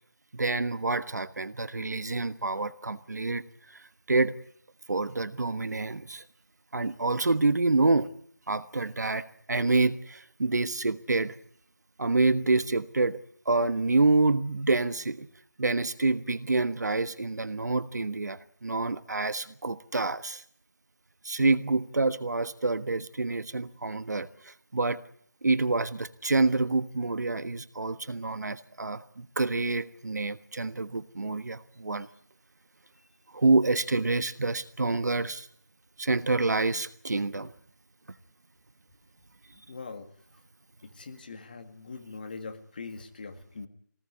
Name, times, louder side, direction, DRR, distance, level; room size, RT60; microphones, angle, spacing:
voice 1, 0.3-3.4 4.1-4.3 4.9-6.2 6.7-8.1 8.5-11.3 12.0-13.2 13.4-15.3 15.6-20.4 21.2-25.0 25.4-32.1 33.3-35.5 36.0-37.5, right 3 dB, 65° right, 14 dB, 1.3 m, -27 dB
voice 2, 39.7-40.1 40.9-43.7, left 4 dB, 30° left, 6 dB, 2.1 m, -42 dB
22.5 x 19.0 x 9.7 m, 0.64 s
figure-of-eight pair, 175°, 10 cm